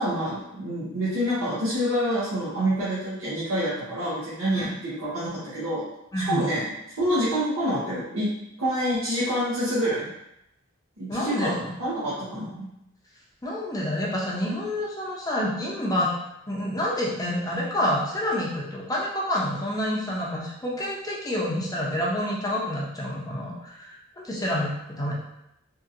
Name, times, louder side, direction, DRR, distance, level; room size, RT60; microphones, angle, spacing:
voice 1, 0.0-5.9 6.2-6.6 7.0-8.3 8.6-10.1 11.0-12.7, equal, 75° right, -10 dB, 0.8 m, -27 dB
voice 2, 6.1-6.6 11.1-11.7 13.4-16.1 16.5-25.1, left 1 dB, 20° left, -4 dB, 0.6 m, -28 dB
2.8 x 2.7 x 2.5 m, 0.82 s
head